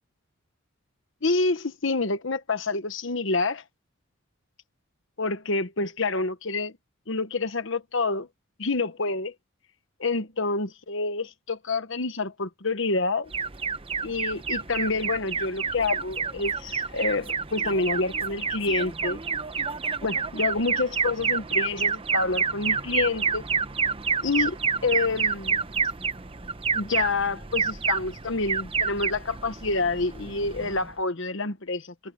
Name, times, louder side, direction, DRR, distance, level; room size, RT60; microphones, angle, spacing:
voice 1, 1.2-3.6 5.2-6.7 7.1-8.3 8.6-9.3 10.0-13.3 14.0-19.2 20.0-23.4 24.2-25.6 26.7-31.9, left 3 dB, 60° left, 1.1 m, -28 dB
Alarm, 13.3-30.9, right 5 dB, 25° right, 0.8 m, -29 dB
head